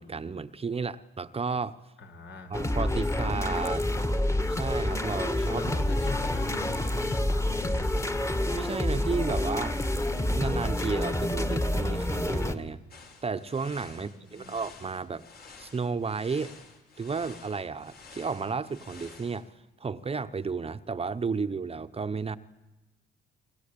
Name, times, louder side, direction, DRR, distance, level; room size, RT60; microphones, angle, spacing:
voice 1, 0.0-1.8 2.5-3.9 4.6-5.6 8.5-9.8 10.4-12.8 13.2-15.2 15.6-16.5 17.0-19.5 19.8-22.4, right 5 dB, 30° right, 12 dB, 1.0 m, -32 dB
voice 2, 2.0-2.5 5.5-7.9 13.9-14.6, left 4 dB, 70° left, 5 dB, 5.6 m, -41 dB
sound 1, 2.5-12.6, left 1 dB, 15° left, 1.9 m, -28 dB
sound 2, 12.9-19.4, left 4 dB, 50° left, 5.2 m, -51 dB
29.0 x 22.5 x 8.7 m, 1.1 s
cardioid pair, 90°, 20 cm